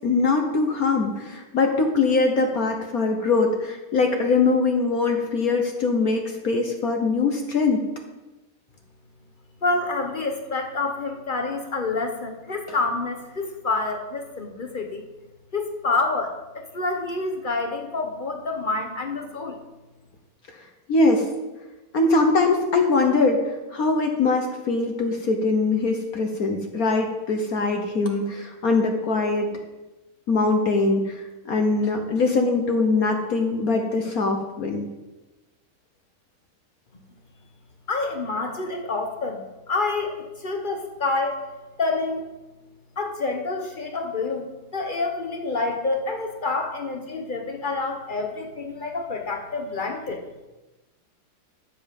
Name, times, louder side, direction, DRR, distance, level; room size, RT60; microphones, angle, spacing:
voice 1, 0.0-7.8 20.9-21.3 21.9-29.5 30.3-34.9, left 3 dB, 50° left, 4 dB, 1.2 m, -22 dB
voice 2, 9.6-15.0 15.5-19.6 37.9-39.4 39.7-41.4 41.8-42.3 43.0-50.2, left 3 dB, 70° left, 4 dB, 0.4 m, -28 dB
12.0 x 7.5 x 5.3 m, 1.1 s
omnidirectional pair, 2.4 m